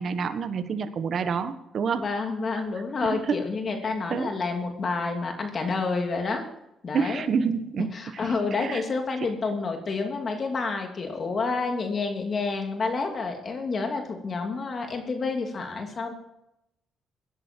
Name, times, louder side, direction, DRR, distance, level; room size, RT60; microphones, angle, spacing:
voice 1, 0.0-2.1 3.0-3.4 4.1-4.3 6.9-8.2 8.6-8.8, right 6 dB, 55° right, 10 dB, 1.4 m, -28 dB
voice 2, 1.9-6.4 6.8-7.2 7.8-16.1, left 4 dB, 45° left, 4 dB, 2.7 m, -29 dB
17.5 x 10.5 x 4.6 m, 0.88 s
cardioid pair, 90°, 0 cm